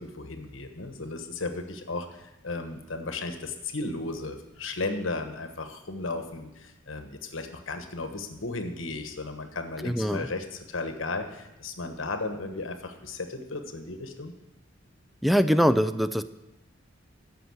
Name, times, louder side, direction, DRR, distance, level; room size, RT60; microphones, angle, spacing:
voice 1, 0.0-14.3, left 3 dB, 85° left, 6 dB, 1.2 m, -35 dB
voice 2, 9.8-10.3 15.2-16.2, equal, ahead, 12 dB, 0.4 m, -23 dB
14.0 x 5.6 x 7.8 m, 0.97 s
head